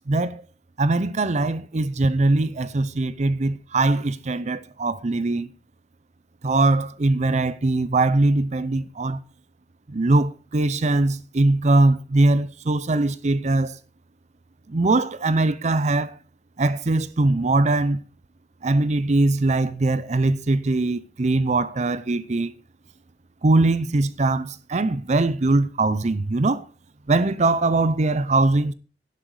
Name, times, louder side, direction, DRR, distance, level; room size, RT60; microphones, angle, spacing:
voice 1, 0.1-0.4 0.8-5.5 6.4-9.2 9.9-13.8 14.7-16.1 16.6-18.0 18.6-22.5 23.4-26.6 27.1-28.7, right 2 dB, 40° right, 0.6 m, -21 dB
11.5 x 10.5 x 4.8 m
head